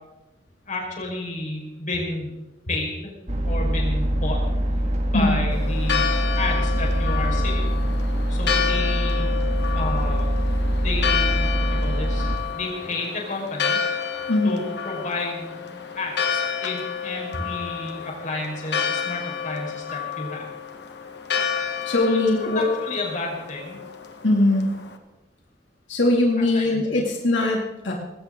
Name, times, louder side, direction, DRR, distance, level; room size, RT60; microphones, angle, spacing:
voice 1, 0.6-2.3 2.7-3.1 3.4-4.4 4.7-4.8 5.1-7.7 8.3-9.3 9.7-10.3 10.7-13.8 14.1-20.4 22.1-23.8 26.5-27.1, left 2 dB, 45° left, -1 dB, 5.1 m, -31 dB
sound 1, 3.3-12.4, equal, 40° right, 2.2 m, -23 dB
Church bell, 5.5-24.9, left 7 dB, 65° left, 1.7 m, -30 dB
voice 2, 14.3-14.6 21.9-22.7 24.2-24.7 25.9-27.9, left 2 dB, 90° left, -1 dB, 2.7 m, -21 dB
20.0 x 17.5 x 3.9 m, 1.0 s
head